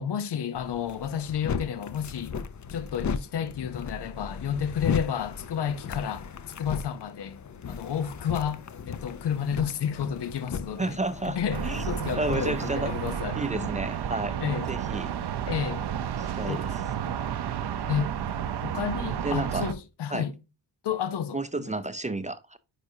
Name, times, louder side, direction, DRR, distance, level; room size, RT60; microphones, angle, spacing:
voice 1, 0.0-2.4 2.7-6.3 6.6-7.4 7.7-11.0 11.2-13.7 14.4-14.7 15.5-15.8 16.4-17.2 17.9-18.2 18.6-20.3 20.8-21.7, left 8 dB, 80° left, 0.9 m, -31 dB
sound 1, 0.5-13.1, left 6 dB, 45° left, 0.6 m, -37 dB
voice 2, 10.8-12.9 13.3-14.4 14.7-15.1 16.2-16.8 19.2-19.7 20.1-20.2 21.3-22.6, right 2 dB, 20° right, 0.5 m, -31 dB
sound 2, 11.5-19.7, right 9 dB, 75° right, 0.8 m, -31 dB
9.5 x 4.8 x 2.7 m
wide cardioid pair, 125°, 40 cm